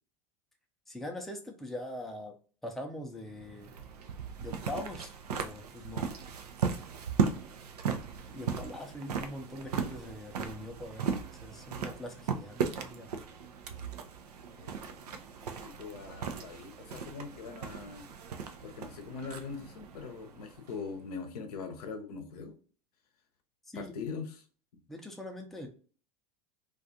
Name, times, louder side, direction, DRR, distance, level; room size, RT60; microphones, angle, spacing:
voice 1, 0.9-2.3 2.6-3.8 4.4-6.2 8.3-11.2 11.4-13.2 23.7-23.9 24.9-25.7, left 1 dB, ahead, 3 dB, 0.5 m, -42 dB
sound 1, 3.3-21.0, right 6 dB, 85° right, 0.4 m, -37 dB
voice 2, 8.2-8.5 14.6-15.0 15.6-18.1 18.6-22.6 23.7-24.4, left 5 dB, 75° left, 5 dB, 0.6 m, -42 dB
2.4 x 2.4 x 2.6 m, 0.39 s
hypercardioid pair, 85°, 20 cm